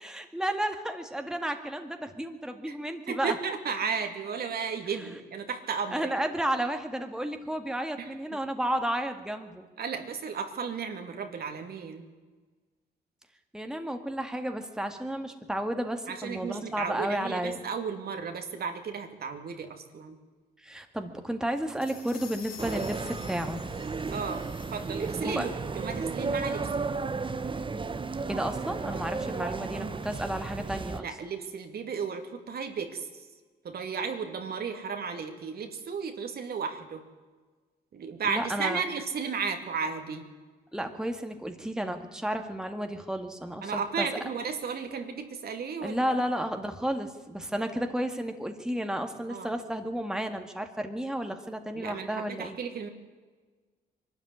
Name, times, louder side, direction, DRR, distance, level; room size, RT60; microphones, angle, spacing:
voice 1, 0.0-3.4 5.9-9.7 13.5-17.6 20.6-23.6 25.2-25.5 28.3-31.1 38.2-38.8 40.7-44.1 45.8-52.6, right 1 dB, 5° right, 6 dB, 1.9 m, -32 dB
voice 2, 3.1-6.0 8.0-8.1 9.8-12.1 16.1-20.2 24.1-25.5 25.8-26.7 31.0-33.1 33.6-37.0 37.9-40.3 43.6-46.0 49.3-49.5 51.7-52.9, right 5 dB, 60° right, 6 dB, 2.5 m, -34 dB
sound 1, 21.5-25.5, left 7 dB, 60° left, 3.5 m, -49 dB
sound 2, 22.6-31.0, right 4 dB, 30° right, 1.1 m, -33 dB
22.5 x 12.5 x 9.8 m, 1.4 s
cardioid pair, 80°, 18 cm